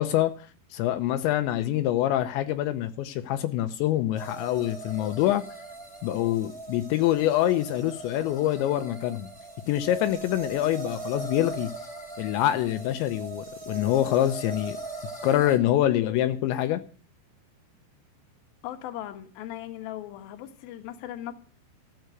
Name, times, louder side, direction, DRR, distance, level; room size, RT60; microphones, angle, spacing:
voice 1, 0.0-5.4 6.0-9.3 9.7-11.7 12.2-14.8 15.2-16.8, left 13 dB, 85° left, 3.0 m, -25 dB
sound 1, 4.1-15.6, right 2 dB, ahead, 2.2 m, -40 dB
voice 2, 18.6-21.3, left 12 dB, 65° left, 2.7 m, -38 dB
13.5 x 8.0 x 7.9 m
omnidirectional pair, 5.3 m